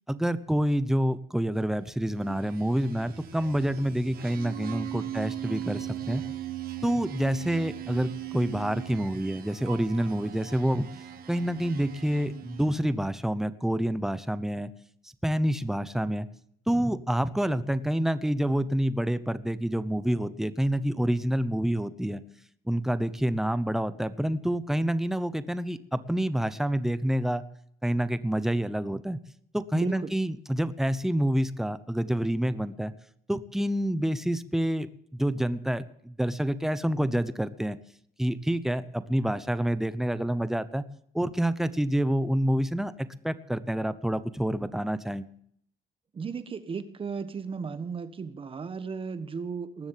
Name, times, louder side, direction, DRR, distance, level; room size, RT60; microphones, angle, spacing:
voice 1, 0.1-6.2 6.8-10.9 11.3-14.7 15.2-16.3 16.7-22.2 22.7-27.4 27.8-29.2 29.5-32.9 33.3-37.8 38.2-40.8 41.1-45.2, right 1 dB, ahead, 14 dB, 0.8 m, -28 dB
sound 1, 2.0-12.9, right 12 dB, 60° right, 1.2 m, -39 dB
voice 2, 29.7-30.1 46.1-49.9, right 5 dB, 30° right, 11 dB, 1.3 m, -35 dB
19.5 x 7.2 x 7.4 m, 0.68 s
cardioid pair, 110°, 17 cm